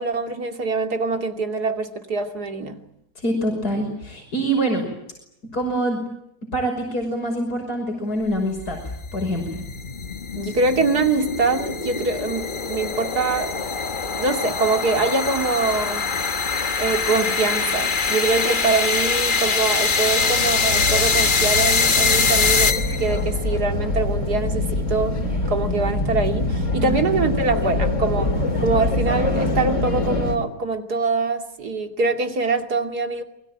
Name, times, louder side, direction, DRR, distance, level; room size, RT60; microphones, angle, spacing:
voice 1, 0.0-2.8 10.3-13.6 14.2-16.0 16.8-25.2 25.5-33.2, right 3 dB, 85° right, 5 dB, 3.2 m, -24 dB
voice 2, 3.2-4.8 5.5-6.0 6.5-8.8 9.1-9.7 26.8-27.0, right 1 dB, 80° left, 2 dB, 6.4 m, -25 dB
sound 1, 8.4-23.2, left 4 dB, 35° left, 1.4 m, -23 dB
sound 2, 19.9-30.4, left 2 dB, 50° left, 4.1 m, -24 dB
28.0 x 22.0 x 9.0 m, 0.80 s
omnidirectional pair, 1.6 m